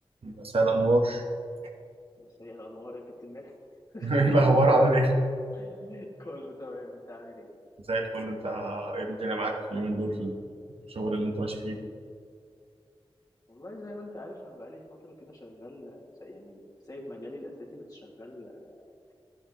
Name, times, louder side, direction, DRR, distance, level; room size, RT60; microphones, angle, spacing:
voice 1, 0.2-1.2 4.0-5.1 7.9-10.3 10.9-11.8, right 2 dB, 70° right, 1 dB, 1.2 m, -25 dB
voice 2, 2.2-3.5 3.9-4.3 5.5-7.5 13.5-19.1, left 1 dB, 40° left, -3 dB, 2.2 m, -44 dB
12.5 x 10.0 x 3.1 m, 2.3 s
wide cardioid pair, 65°, 10 cm